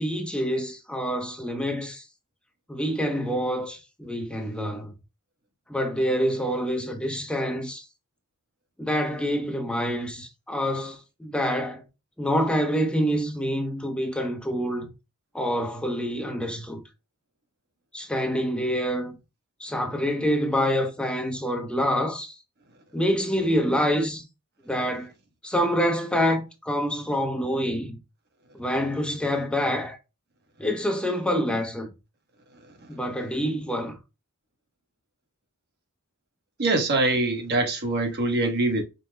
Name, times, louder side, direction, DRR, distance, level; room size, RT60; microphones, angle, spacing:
voice 1, 0.0-2.0 2.7-4.9 5.7-7.9 8.8-11.8 12.2-14.9 15.3-16.8 17.9-19.1 19.6-22.4 22.9-24.2 24.7-25.1 25.4-28.0 28.5-30.0 30.6-31.9 32.9-34.0, equal, 5° left, 0.7 m, -26 dB
voice 2, 36.6-38.8, right 2 dB, 50° right, 1.1 m, -23 dB
5.4 x 2.2 x 3.2 m
head